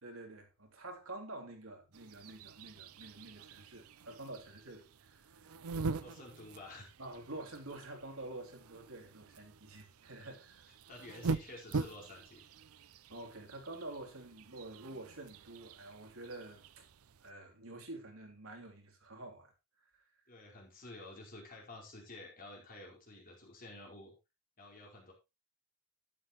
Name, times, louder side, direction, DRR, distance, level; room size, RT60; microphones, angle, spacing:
voice 1, 0.0-5.5 7.0-10.7 13.1-16.8 17.2-19.5, right 2 dB, 70° right, 3.3 m, -48 dB
sound 1, 1.9-17.3, right 4 dB, 90° right, 0.6 m, -44 dB
voice 2, 6.0-6.9 10.9-12.4 20.3-24.1 24.6-25.1, left 2 dB, 40° left, 4.8 m, -51 dB
12.0 x 9.9 x 3.1 m
head